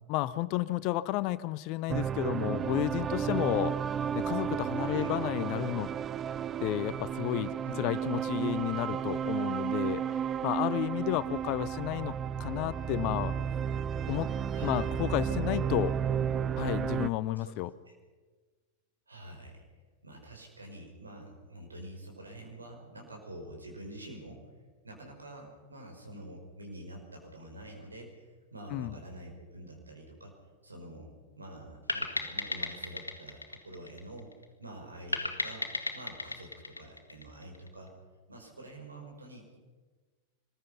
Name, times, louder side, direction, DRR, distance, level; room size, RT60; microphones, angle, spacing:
voice 1, 0.1-3.8 4.1-5.9 6.6-7.5 7.8-10.0 10.4-12.1 12.4-13.3 14.1-14.3 14.6-15.9 16.6-17.7 28.7-28.9, left 16 dB, 45° left, 16 dB, 0.8 m, -32 dB
sound 1, 1.9-17.1, right 8 dB, 25° right, 0.5 m, -32 dB
voice 2, 4.8-5.2 7.6-8.2 14.5-15.1 17.4-17.5 17.9-18.0 19.1-19.6 20.0-24.5 24.8-30.4 30.6-34.3 34.6-35.7 35.9-37.9 38.3-39.6, right 1 dB, 80° right, 2 dB, 5.2 m, -47 dB
sound 2, 31.9-34.4 35.1-37.7, left 2 dB, 80° left, 1.7 m, -35 dB
24.5 x 20.5 x 5.7 m, 1.4 s
figure-of-eight pair, 90°, 0 cm